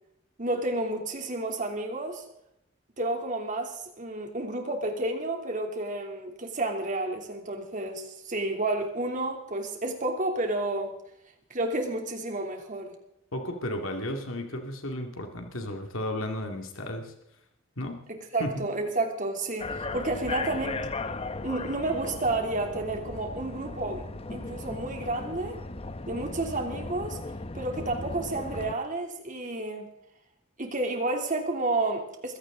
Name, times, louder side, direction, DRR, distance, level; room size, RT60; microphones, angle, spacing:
voice 1, 0.4-2.2 3.0-10.9 11.5-12.9 18.1-20.9 21.4-24.1 24.3-25.6 26.1-27.2 27.5-29.9 30.6-32.4, right 2 dB, 40° right, 3.1 m, -31 dB
voice 2, 13.3-17.1 17.8-18.0 18.4-18.6, left 1 dB, 75° left, 2.4 m, -34 dB
sound 1, 19.6-28.7, left 3 dB, 30° left, 0.8 m, -37 dB
22.0 x 16.5 x 3.9 m
head